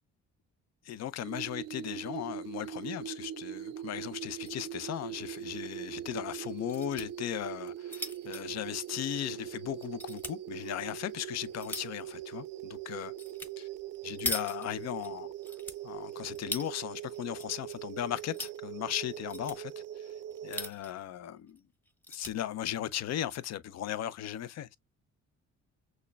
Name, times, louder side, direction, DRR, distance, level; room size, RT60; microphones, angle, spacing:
voice 1, 0.8-13.1 13.6-13.7 14.0-15.3 15.8-19.7 20.0-20.1 20.4-21.6 22.1-24.8, left 11 dB, 60° left, 0.5 m, -37 dB
sound 1, 1.2-20.7, right 11 dB, 60° right, 0.4 m, -42 dB
sound 2, 4.2-4.6 5.0-5.1 5.3-5.4 6.4-7.1 7.6-9.4 9.8-10.4 11.0-12.0 13.2-13.5 13.8-15.1 15.4-16.7 17.1-17.7 18.0-18.6 19.1-19.6 20.3-21.0 21.5-21.6 21.9-22.3 23.1-23.4, left 1 dB, 5° left, 0.8 m, -40 dB
6.3 x 2.1 x 2.2 m
cardioid pair, 90°, 30 cm